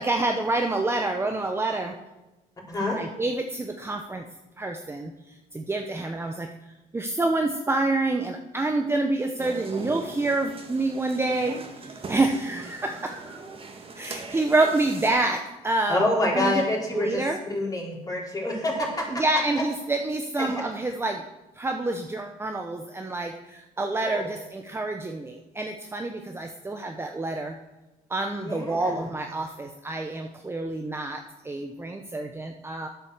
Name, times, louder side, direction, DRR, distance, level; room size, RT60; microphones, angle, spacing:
voice 1, 0.0-1.9 3.0-4.2 4.6-5.1 5.5-6.5 6.9-13.4 14.0-16.1 16.3-16.6 16.9-17.4 19.1-21.2 21.6-27.6 28.1-32.9, right 2 dB, 15° right, 4 dB, 0.8 m, -27 dB
voice 2, 2.7-3.0 15.9-17.2 17.5-19.2 20.4-20.5 24.0-24.3 28.4-29.1, left 1 dB, 20° left, -3 dB, 4.1 m, -27 dB
sound 1, 9.4-15.1, right 3 dB, 30° right, 1.8 m, -40 dB
11.0 x 8.1 x 6.5 m, 1.0 s
cardioid pair, 110°, 17 cm